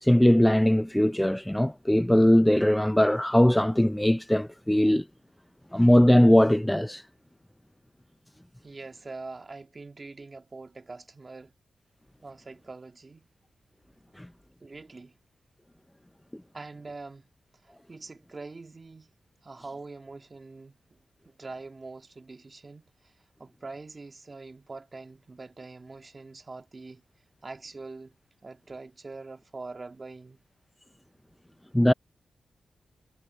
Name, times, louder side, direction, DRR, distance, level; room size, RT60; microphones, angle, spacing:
voice 1, 0.0-5.0 5.7-7.0 14.2-14.3 31.7-31.9, left 1 dB, 5° left, 0.5 m, -20 dB
voice 2, 8.6-11.5 12.2-13.3 14.6-15.1 16.5-17.3 17.6-19.1 19.4-21.0 21.3-23.1 23.4-27.0 27.4-28.1 28.4-30.4, right 3 dB, 35° right, 2.5 m, -44 dB
cardioid pair, 80°, 0 cm